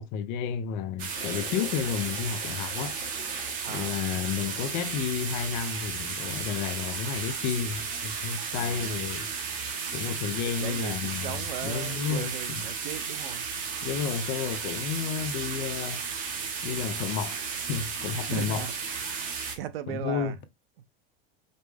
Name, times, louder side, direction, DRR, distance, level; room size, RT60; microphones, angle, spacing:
voice 1, 0.0-3.0 3.7-9.3 9.9-11.3 11.6-12.6 13.8-16.0 16.6-18.6 19.9-20.3, left 7 dB, 30° left, 0.5 m, -31 dB
sound 1, 1.0-19.6, right 5 dB, 25° right, 0.8 m, -34 dB
sound 2, 1.1-5.2, left 10 dB, 65° left, 0.8 m, -47 dB
voice 2, 3.6-4.0 8.5-9.0 10.4-13.5 18.3-18.7 19.5-20.4, right 11 dB, 70° right, 0.7 m, -38 dB
5.2 x 2.1 x 3.3 m
supercardioid pair, 150°, 30 cm